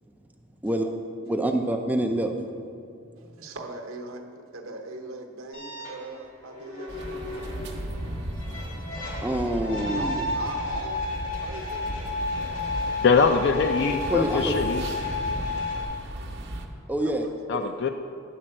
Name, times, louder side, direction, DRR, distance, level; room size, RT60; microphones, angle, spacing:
voice 1, 0.6-1.0 1.2-2.4 8.7-8.8 9.2-10.2 14.1-14.5 16.9-17.3 17.6-17.8, right 1 dB, 10° right, 3 dB, 0.4 m, -26 dB
voice 2, 3.2-7.5 10.0-13.1 13.4-13.6 17.0-17.4, right 3 dB, 85° right, 3 dB, 0.9 m, -41 dB
sound 1, 5.5-15.9, left 3 dB, 80° left, 2.2 m, -33 dB
sound 2, 6.9-16.7, right 1 dB, 60° right, 0.9 m, -36 dB
voice 3, 13.0-14.8 17.5-17.9, left 5 dB, 55° left, 6 dB, 0.4 m, -22 dB
10.5 x 4.3 x 7.4 m, 2.4 s
head